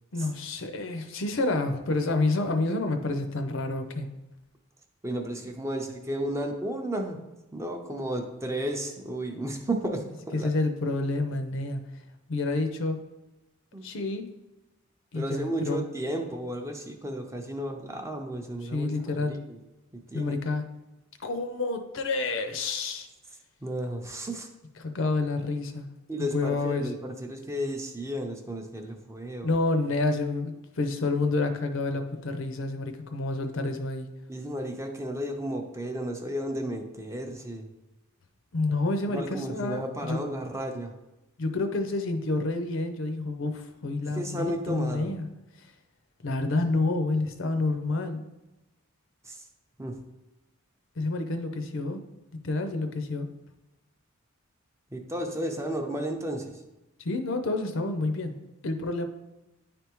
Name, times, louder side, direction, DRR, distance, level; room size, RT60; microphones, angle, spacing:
voice 1, 0.1-4.1 10.3-11.8 12.3-13.0 13.8-14.3 15.1-15.8 18.6-19.4 20.1-20.6 21.2-23.1 24.8-25.9 26.2-26.9 29.4-34.1 38.5-40.2 41.4-45.3 46.2-48.2 51.0-52.0 52.4-53.3 57.0-58.3 58.6-59.1, left 2 dB, 65° left, 7 dB, 0.6 m, -29 dB
voice 2, 5.0-7.2 7.5-10.0 10.4-10.5 13.7-13.9 15.1-18.9 19.2-19.6 19.9-20.4 23.6-24.5 26.1-29.5 34.3-37.7 39.1-40.9 44.1-45.1 49.2-49.4 49.8-50.0 54.9-56.5, right 1 dB, 15° right, 3 dB, 0.5 m, -33 dB
9.9 x 3.4 x 3.0 m, 0.98 s
head